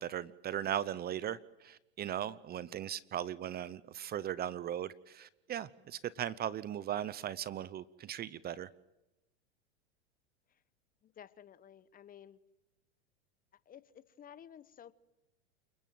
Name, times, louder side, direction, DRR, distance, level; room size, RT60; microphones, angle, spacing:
voice 1, 0.0-8.7, right 10 dB, 30° right, 0.9 m, -38 dB
voice 2, 11.0-12.4 13.7-14.9, left 9 dB, 25° left, 1.1 m, -54 dB
29.5 x 21.0 x 7.8 m
hypercardioid pair, 105°, 34 cm